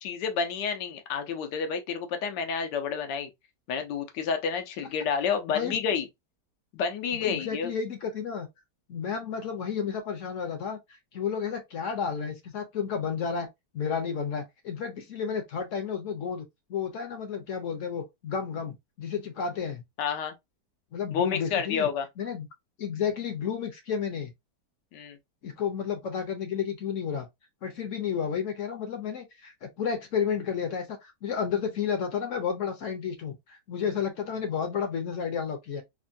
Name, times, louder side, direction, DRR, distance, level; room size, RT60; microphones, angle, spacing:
voice 1, 0.0-3.3 3.7-6.0 6.7-7.7 20.0-20.3 21.1-22.1 24.9-25.2, left 6 dB, 90° left, 1.3 m, -29 dB
voice 2, 7.1-8.5 8.9-10.8 11.1-13.5 13.7-16.4 16.7-19.8 20.9-21.9 22.2-22.5 22.8-24.3 25.4-27.3 27.6-35.8, left 7 dB, 60° left, 0.8 m, -31 dB
3.4 x 2.2 x 2.5 m
omnidirectional pair, 1.8 m